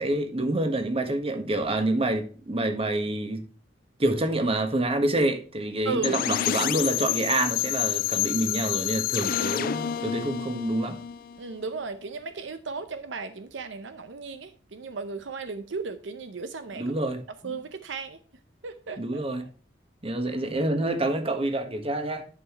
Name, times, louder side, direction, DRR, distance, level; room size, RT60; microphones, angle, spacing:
voice 1, 0.0-3.4 4.0-11.0 16.7-17.5 19.0-19.5 20.0-22.3, right 1 dB, 30° right, 1.3 m, -27 dB
voice 2, 5.8-6.2 11.4-16.9 17.4-18.2 18.6-19.5, right 4 dB, 75° right, 0.7 m, -35 dB
sound 1, 6.0-11.8, left 11 dB, 50° left, 0.3 m, -28 dB
11.0 x 5.6 x 3.0 m
head